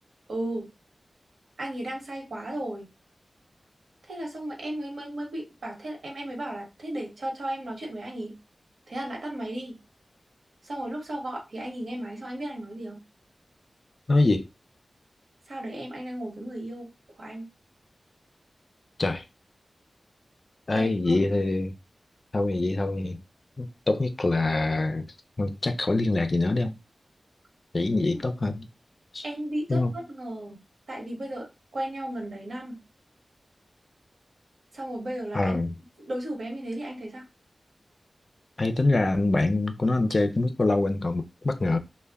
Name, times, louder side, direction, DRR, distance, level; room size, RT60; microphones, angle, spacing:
voice 1, 0.3-0.7 1.6-2.9 4.0-8.4 8.9-9.8 10.6-13.0 15.5-16.9 17.2-17.5 20.7-21.2 28.1-28.2 29.2-30.6 30.9-31.5 31.7-32.8 34.7-35.6 36.1-37.2, right 1 dB, 90° right, 1.0 m, -35 dB
voice 2, 14.1-14.5 19.0-19.2 20.7-21.7 22.3-23.2 23.6-25.1 25.4-26.7 27.7-28.7 29.1-29.2 29.7-29.9 35.3-35.7 38.6-41.8, left 2 dB, 45° left, 0.3 m, -24 dB
2.1 x 2.1 x 3.4 m
wide cardioid pair, 90°, 0 cm